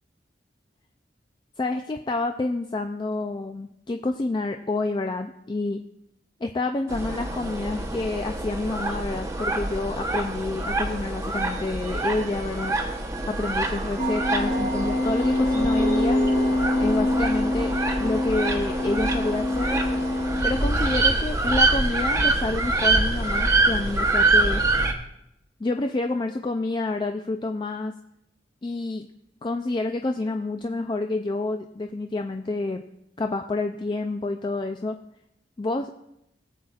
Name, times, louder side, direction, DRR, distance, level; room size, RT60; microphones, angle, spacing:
voice 1, 1.6-5.8 6.4-12.8 13.3-16.2 16.8-17.7 18.0-19.8 20.4-24.6 25.6-27.9 28.6-29.1 29.4-32.8 33.2-35.0 35.6-35.9, left 2 dB, 25° left, 5 dB, 0.4 m, -28 dB
sound 1, 6.9-24.9, right 2 dB, 15° right, 0.9 m, -25 dB
Mallet percussion, 11.8-12.8 13.1-18.6, right 5 dB, 45° right, 0.5 m, -37 dB
sound 2, 14.0-20.7, left 2 dB, 45° left, 0.7 m, -25 dB
21.0 x 7.6 x 2.4 m, 0.83 s
head